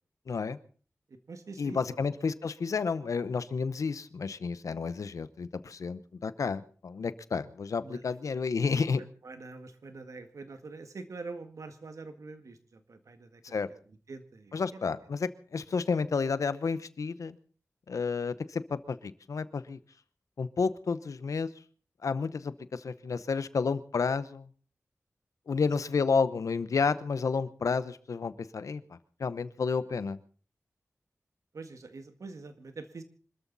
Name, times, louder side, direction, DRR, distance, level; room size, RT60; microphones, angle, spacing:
voice 1, 0.3-0.6 1.6-9.0 13.4-13.7 14.5-17.4 17.9-19.8 20.4-21.5 22.0-24.5 25.5-28.8 29.2-30.2, left 5 dB, 90° left, 14 dB, 0.9 m, -31 dB
voice 2, 1.1-2.0 7.8-8.1 9.2-13.4 13.9-14.8 23.1-23.2 25.7-25.9 31.5-33.0, right 3 dB, 80° right, 8 dB, 1.9 m, -45 dB
25.5 x 13.5 x 4.1 m, 0.43 s
wide cardioid pair, 70°, 5 cm